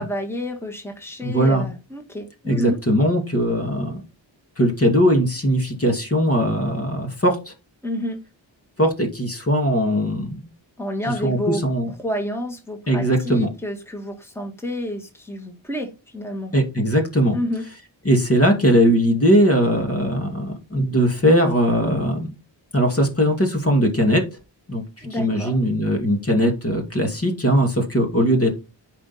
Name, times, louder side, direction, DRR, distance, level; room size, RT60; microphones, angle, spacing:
voice 1, 0.0-2.8 7.8-8.2 10.8-11.6 12.0-16.5 17.3-17.6 25.0-25.6, equal, 5° left, 3 dB, 2.0 m, -29 dB
voice 2, 1.2-1.7 2.5-4.0 4.6-7.5 8.8-10.5 11.2-11.9 12.9-13.5 16.5-17.4 18.0-22.3 22.7-24.2 24.7-28.5, equal, 30° left, 3 dB, 2.4 m, -20 dB
8.3 x 5.2 x 4.3 m, 0.30 s
cardioid pair, 40°, 46 cm